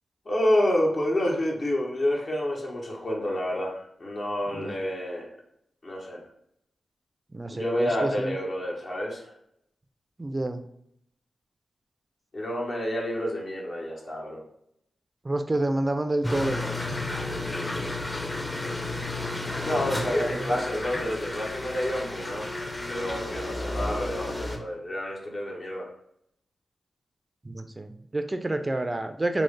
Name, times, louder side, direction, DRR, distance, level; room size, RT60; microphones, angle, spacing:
voice 1, 0.3-5.3 5.8-6.3 7.5-9.3 12.3-14.4 17.4-17.9 18.3-18.7 19.6-22.5 22.9-25.9, left 1 dB, 55° left, -3 dB, 0.8 m, -29 dB
voice 2, 7.3-8.4 10.2-10.6 15.2-16.6 19.9-20.5 27.4-29.4, right 2 dB, 30° right, 7 dB, 0.3 m, -29 dB
sound 1, 16.2-24.6, left 2 dB, 25° left, 0.6 m, -32 dB
3.2 x 2.0 x 3.1 m, 0.73 s
supercardioid pair, 40°, 0 cm